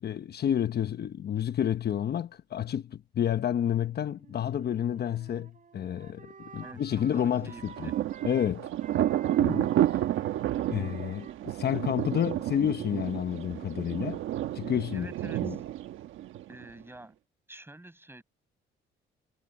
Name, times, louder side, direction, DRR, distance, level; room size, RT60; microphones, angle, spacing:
voice 1, 0.0-7.9 8.2-8.7 9.4-9.7 10.7-14.2 14.5-15.6, left 9 dB, 55° left, 1.0 m, -30 dB
Wind instrument woodwind instrument, 3.6-8.5 8.8-14.1, right 6 dB, 40° right, 5.5 m, -52 dB
voice 2, 6.6-7.9 14.9-15.6 16.5-17.2 17.5-18.2, right 1 dB, 10° right, 6.1 m, -48 dB
Thunder, 7.3-16.8, right 13 dB, 85° right, 1.2 m, -31 dB
cardioid pair, 90°, 20 cm